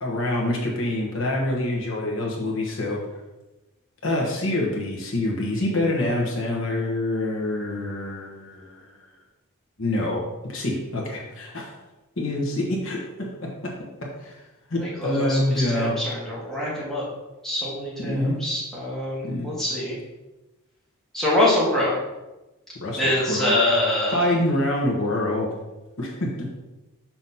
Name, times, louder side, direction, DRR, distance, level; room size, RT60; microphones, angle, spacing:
voice 1, 0.0-3.0 4.0-8.9 9.8-11.7 12.2-13.7 14.2-14.3 14.7-16.0 18.0-18.4 19.2-19.5 22.8-23.5 24.1-25.5 26.0-26.5, left 1 dB, 60° left, -2 dB, 1.1 m, -26 dB
voice 2, 14.8-17.0 17.4-20.0 21.1-22.0 23.0-24.3, left 1 dB, ahead, -7 dB, 1.4 m, -24 dB
5.8 x 3.0 x 5.5 m, 1.0 s
head